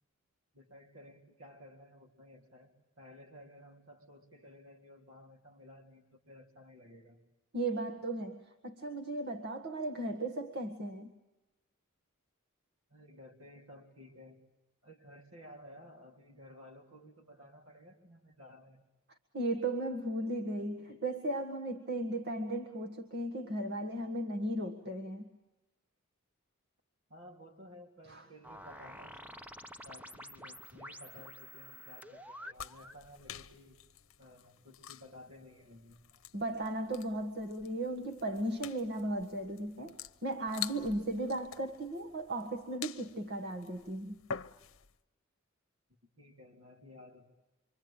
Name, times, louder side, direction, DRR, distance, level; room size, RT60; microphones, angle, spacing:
voice 1, 0.5-2.7 3.0-7.2 12.9-14.4 14.8-18.8 27.1-29.2 29.8-33.8 34.2-36.2 46.2-47.3, left 1 dB, 75° right, 1 dB, 3.7 m, -55 dB
voice 2, 7.5-8.4 8.6-11.1 19.3-25.3 28.1-28.2 36.3-44.2, right 1 dB, 50° right, 5 dB, 1.7 m, -36 dB
sound 1, 28.4-33.0, equal, 5° right, 0.9 m, -49 dB
sound 2, 32.5-45.0, left 8 dB, 65° left, 0.9 m, -48 dB
27.0 x 25.0 x 8.8 m, 1.0 s
head